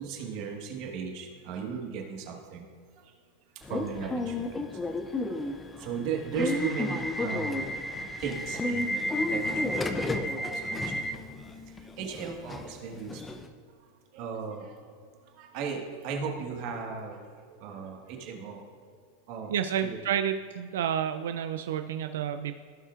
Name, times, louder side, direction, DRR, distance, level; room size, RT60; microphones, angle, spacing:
voice 1, 0.0-2.6 3.7-4.7 5.8-7.6 8.2-9.8 10.1-11.2 12.0-13.2 14.1-14.7 15.4-17.2 17.6-18.6 19.3-19.5 19.8-20.0, right 6 dB, 45° right, 1 dB, 1.4 m, -36 dB
Subway metro underground / Alarm, 3.6-13.5, left 1 dB, 10° left, 0.4 m, -32 dB
voice 2, 19.5-22.6, right 9 dB, 90° right, 7 dB, 0.3 m, -30 dB
16.0 x 5.5 x 2.4 m, 2.1 s
supercardioid pair, 160°, 0 cm